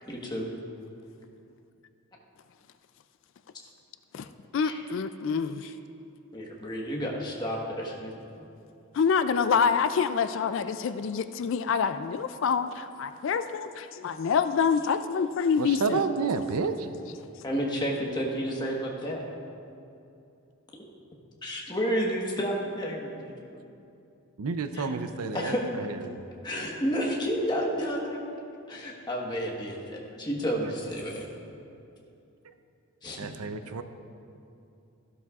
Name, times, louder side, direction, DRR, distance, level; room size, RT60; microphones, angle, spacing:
voice 1, 0.1-0.4 4.6-4.8 6.3-8.5 17.4-19.2 21.4-23.6 24.7-24.9 25.3-25.9 26.4-28.3 28.7-31.3 33.0-33.2, equal, 20° left, -2 dB, 1.2 m, -31 dB
voice 2, 4.5-5.7 8.9-16.0, left 6 dB, 55° left, 11 dB, 0.3 m, -26 dB
voice 3, 15.6-16.7 24.4-25.5 26.1-26.2 33.2-33.8, right 4 dB, 90° right, 9 dB, 0.6 m, -30 dB
14.5 x 12.0 x 2.4 m, 2.7 s
head